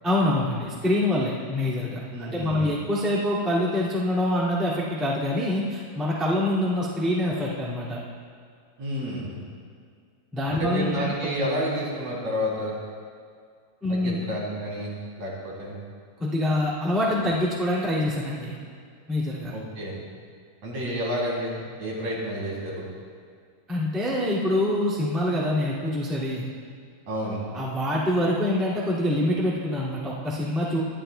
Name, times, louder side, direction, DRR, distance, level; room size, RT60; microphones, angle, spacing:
voice 1, 0.0-8.0 10.3-11.1 11.4-11.5 13.8-14.2 16.2-18.6 19.1-19.5 23.7-26.5 27.5-30.8, left 1 dB, ahead, -7 dB, 1.1 m, -25 dB
voice 2, 2.1-2.7 8.8-9.4 10.5-12.7 13.9-14.9 15.2-15.8 19.5-20.0 20.6-22.9 27.1-27.4, equal, 55° right, -5 dB, 4.1 m, -30 dB
21.0 x 12.0 x 2.3 m, 2.1 s
omnidirectional pair, 4.1 m